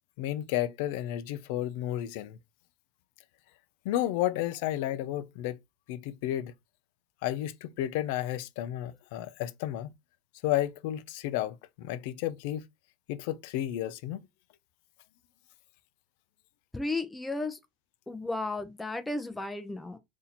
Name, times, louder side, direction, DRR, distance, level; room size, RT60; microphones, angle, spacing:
voice 1, 0.2-2.4 3.8-5.6 5.9-6.5 7.2-9.9 10.4-12.6 13.1-14.3, left 13 dB, 85° left, 0.4 m, -32 dB
voice 2, 16.7-17.6 18.1-20.0, left 2 dB, 10° left, 0.5 m, -34 dB
2.8 x 2.7 x 4.0 m
supercardioid pair, 120°, 0 cm